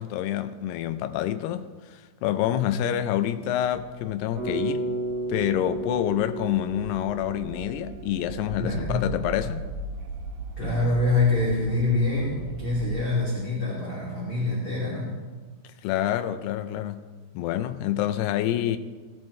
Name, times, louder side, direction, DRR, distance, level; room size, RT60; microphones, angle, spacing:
voice 1, 0.0-4.9 5.3-9.7 15.8-17.0 17.4-18.8, left 11 dB, 85° left, 2.3 m, -27 dB
sound 1, 3.6-13.1, right 3 dB, 85° right, 3.5 m, -39 dB
Bass guitar, 4.4-8.5, right 2 dB, 45° right, 5.8 m, -33 dB
voice 2, 8.6-9.1 10.6-15.1, left 2 dB, 35° left, 3.0 m, -25 dB
19.5 x 13.5 x 3.2 m
omnidirectional pair, 5.4 m